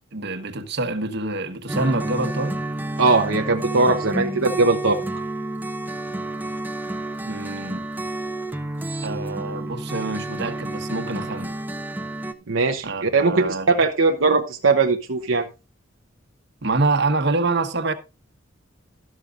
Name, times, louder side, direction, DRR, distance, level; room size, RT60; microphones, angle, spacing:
voice 1, 0.1-2.6 7.2-7.8 9.0-11.5 12.8-13.8 16.6-17.9, right 3 dB, 60° right, 1.3 m, -26 dB
sound 1, 1.7-12.3, right 1 dB, 10° right, 0.8 m, -30 dB
voice 2, 3.0-5.0 12.5-15.5, right 3 dB, 75° right, 1.0 m, -20 dB
12.5 x 12.5 x 2.5 m
head